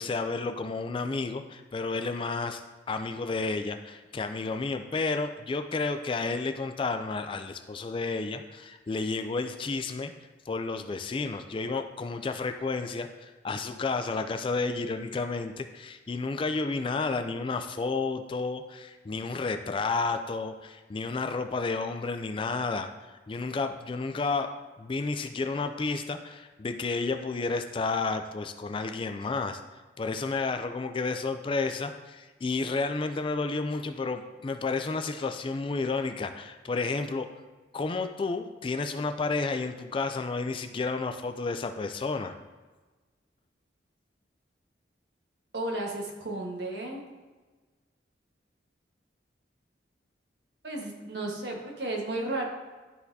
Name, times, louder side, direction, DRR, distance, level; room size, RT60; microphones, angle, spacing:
voice 1, 0.0-2.6 2.9-10.1 10.5-24.5 24.8-29.6 30.0-37.3 37.7-42.3, left 3 dB, 30° left, 7 dB, 0.3 m, -31 dB
voice 2, 45.5-47.0 50.6-52.5, right 2 dB, 65° right, 0 dB, 1.3 m, -33 dB
12.0 x 4.1 x 2.7 m, 1.3 s
head